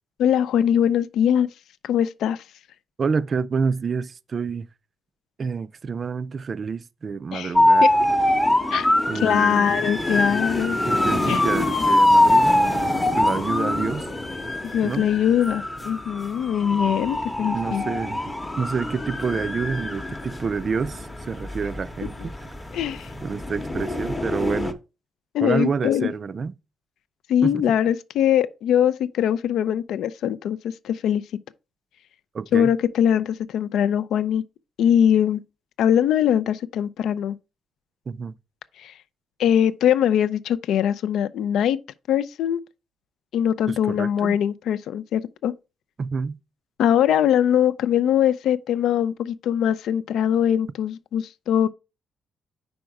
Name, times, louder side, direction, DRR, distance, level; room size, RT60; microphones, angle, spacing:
voice 1, 0.2-1.5 1.8-2.4 7.3-7.5 8.7-8.9 9.2-10.8 11.3-11.4 14.7-17.8 22.2-22.3 22.7-23.1 25.3-26.1 27.3-31.2 32.5-34.4 34.8-35.4 35.8-37.4 38.8-38.9 39.4-41.8 42.1-42.6 43.3-45.5 46.8-51.7, left 9 dB, 85° left, 0.4 m, -22 dB
voice 2, 3.0-4.7 5.4-7.9 9.1-9.8 10.9-12.7 13.2-14.1 14.8-15.1 17.5-18.2 18.6-22.5 23.2-24.8 25.4-26.5 27.4-27.6 32.3-32.7 38.1-38.3 43.7-44.4 46.0-46.4, right 5 dB, 40° right, 0.3 m, -28 dB
sound 1, 7.6-24.7, left 1 dB, 15° left, 0.7 m, -23 dB
5.2 x 4.7 x 4.6 m
cardioid pair, 120°, 0 cm